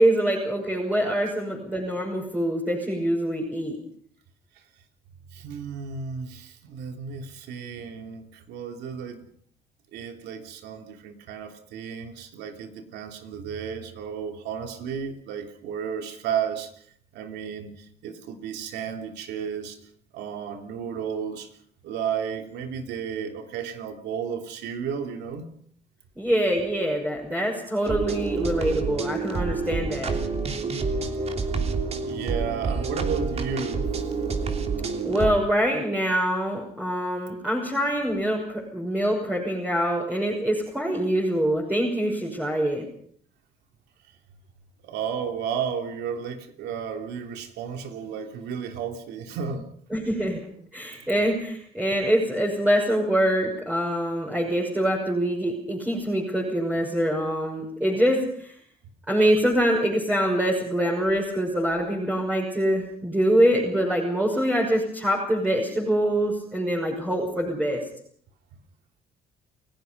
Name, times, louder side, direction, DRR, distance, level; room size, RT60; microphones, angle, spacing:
voice 1, 0.0-3.8 26.2-30.2 35.0-42.8 49.9-50.4 50.7-58.5 59.1-67.8, equal, 10° right, -3 dB, 6.1 m, -24 dB
voice 2, 5.3-9.2 9.9-16.8 17.1-19.8 20.1-21.5 21.8-25.5 31.4-31.5 32.0-33.8 44.8-49.6, right 7 dB, 85° right, 5 dB, 3.1 m, -33 dB
sound 1, 27.8-35.3, right 4 dB, 40° right, 3.2 m, -28 dB
29.5 x 17.5 x 5.4 m, 0.62 s
cardioid pair, 110°, 17 cm